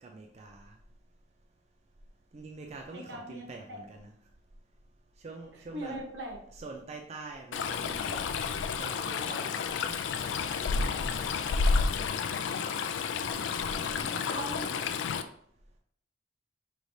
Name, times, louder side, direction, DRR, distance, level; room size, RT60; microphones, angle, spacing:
voice 1, 0.0-0.7 2.3-4.1 5.2-6.0 6.5-8.2 8.8-9.5 10.5-11.2 13.7-14.7, right 3 dB, 35° right, 2 dB, 0.4 m, -45 dB
voice 2, 2.9-3.8 5.7-6.4 14.3-14.7, right 1 dB, 75° right, 1 dB, 1.0 m, -39 dB
Stream, 7.5-15.2, left 5 dB, 85° left, 0.3 m, -31 dB
5.0 x 3.2 x 2.7 m, 0.66 s
head